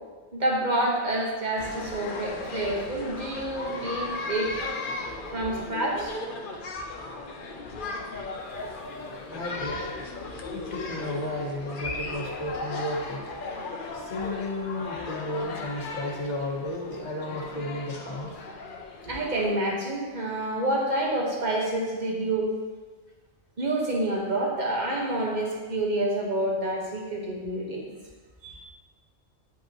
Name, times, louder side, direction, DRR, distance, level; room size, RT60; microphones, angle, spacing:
voice 1, 0.3-4.7 5.3-6.1 19.0-22.5 23.6-27.9 28.4-28.6, right 1 dB, 35° right, -2 dB, 1.3 m, -28 dB
sound 1, 1.6-19.5, left 3 dB, 50° left, 0.7 m, -36 dB
voice 2, 8.3-10.1 10.5-13.2 13.5-13.6 13.9-18.3, left 1 dB, 35° left, -1 dB, 1.2 m, -34 dB
9.0 x 5.3 x 3.0 m, 1.4 s
omnidirectional pair, 1.3 m